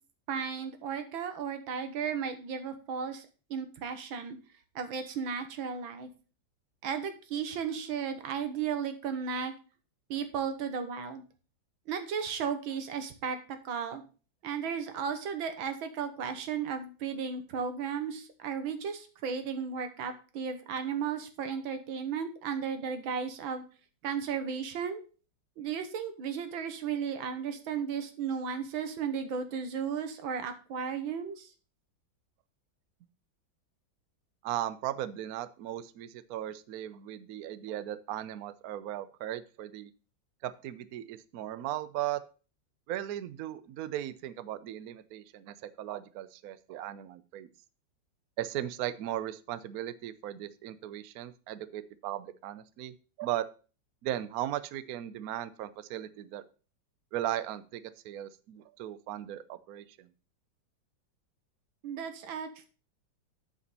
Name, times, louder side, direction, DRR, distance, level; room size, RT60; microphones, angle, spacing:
voice 1, 0.3-4.4 4.8-6.1 6.8-9.5 10.1-11.2 11.9-14.0 14.4-23.6 24.0-25.0 25.6-31.5 61.8-62.7, right 6 dB, 85° right, 8 dB, 1.9 m, -35 dB
voice 2, 34.4-39.9 40.4-42.2 42.9-47.5 48.4-53.5 54.0-56.4 57.1-60.1, right 12 dB, 70° right, 14 dB, 0.9 m, -37 dB
8.2 x 5.2 x 5.4 m, 0.36 s
omnidirectional pair, 2.1 m